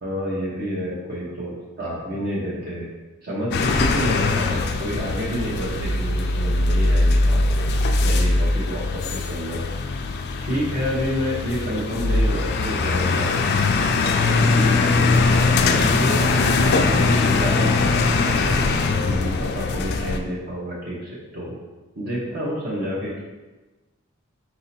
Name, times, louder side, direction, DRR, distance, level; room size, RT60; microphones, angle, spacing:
voice 1, 0.0-1.5 1.8-2.9 3.2-7.4 8.0-9.6 10.4-13.4 14.2-21.6 22.0-23.2, equal, 45° right, -6 dB, 0.9 m, -29 dB
sound 1, 3.5-20.2, left 3 dB, 50° left, 0.3 m, -21 dB
4.1 x 2.7 x 4.2 m, 1.2 s
head